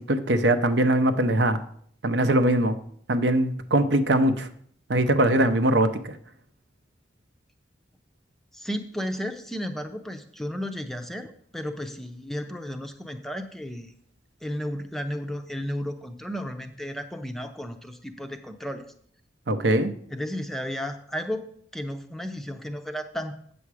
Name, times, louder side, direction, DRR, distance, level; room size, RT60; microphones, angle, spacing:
voice 1, 0.1-1.6 2.0-2.7 3.1-4.5 4.9-6.2 19.5-19.9, right 1 dB, 75° right, 9 dB, 0.7 m, -21 dB
voice 2, 8.5-13.9 14.4-18.9 20.1-23.4, equal, ahead, 6 dB, 0.5 m, -33 dB
8.4 x 7.0 x 4.8 m, 0.63 s
head